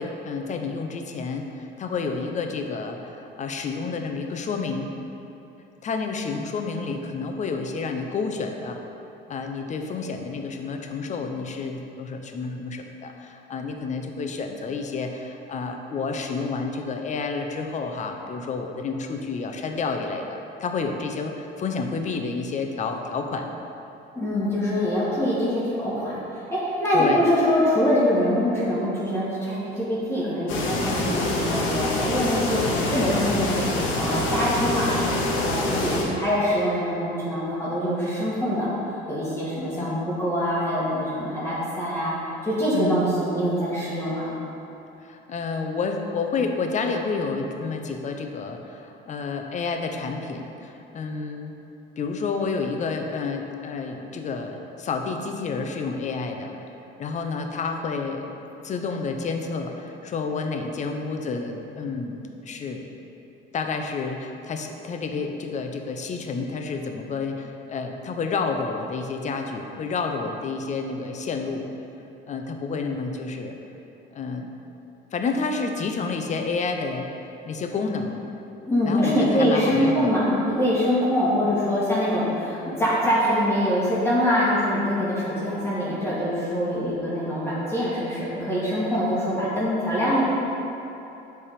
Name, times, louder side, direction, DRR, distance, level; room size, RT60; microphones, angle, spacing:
voice 1, 0.0-4.9 5.8-8.8 9.3-23.5 26.9-27.2 39.8-40.0 42.7-43.0 45.0-51.5 52.0-56.5 57.0-58.4 58.6-62.9 63.5-71.7 72.3-73.6 74.1-74.5 75.1-77.2 77.5-78.2 78.8-80.1 87.3-87.5, left 4 dB, 35° left, 4 dB, 0.6 m, -30 dB
voice 2, 24.1-38.7 39.1-42.1 42.4-44.3 78.7-90.3, equal, 10° left, -9 dB, 1.5 m, -24 dB
sound 1, 30.5-36.0, left 2 dB, 70° left, 1.1 m, -26 dB
7.2 x 3.5 x 4.9 m, 2.9 s
cardioid pair, 115°, 21 cm